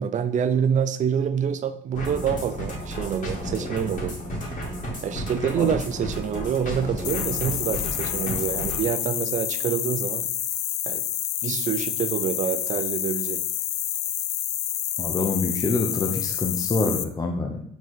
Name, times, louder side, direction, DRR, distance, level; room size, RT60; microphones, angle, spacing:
voice 1, 0.0-4.1 5.0-10.3 10.9-11.0 11.4-13.4, right 8 dB, 45° right, 11 dB, 0.6 m, -26 dB
sound 1, 1.9-8.8, equal, 50° left, 2.3 m, -32 dB
sound 2, 7.0-17.0, left 12 dB, 65° left, 0.5 m, -28 dB
voice 2, 15.0-17.6, left 3 dB, 20° left, 2 dB, 0.7 m, -26 dB
6.2 x 4.1 x 4.7 m, 0.66 s
cardioid pair, 110°, 17 cm